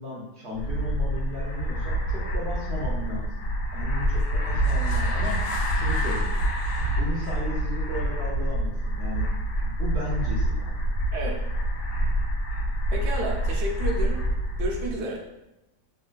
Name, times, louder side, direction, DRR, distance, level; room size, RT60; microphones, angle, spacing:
voice 1, 0.0-3.4 3.7-5.4 5.7-6.3 7.0-9.2 9.6-10.7, left 1 dB, 60° right, -5 dB, 0.7 m, -35 dB
sound 1, 0.5-15.0, right 1 dB, 85° left, 1.2 m, -26 dB
voice 2, 12.9-14.2 14.6-15.2, right 2 dB, 75° right, -1 dB, 1.2 m, -31 dB
3.2 x 2.5 x 2.2 m, 0.94 s
omnidirectional pair, 1.7 m